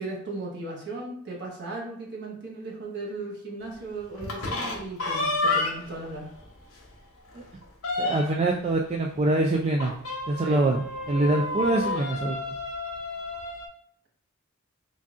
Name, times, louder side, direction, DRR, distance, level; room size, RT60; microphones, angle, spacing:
voice 1, 0.0-6.3 10.4-10.7, right 2 dB, 55° right, -2 dB, 1.1 m, -36 dB
sound 1, 4.2-6.0 6.4-6.5 6.8-6.9 7.3-8.5 9.8-13.7, left 2 dB, 85° left, 0.9 m, -30 dB
voice 2, 8.0-9.9 10.3-12.4, right 2 dB, 30° right, 0 dB, 0.3 m, -24 dB
3.9 x 2.4 x 3.5 m, 0.63 s
head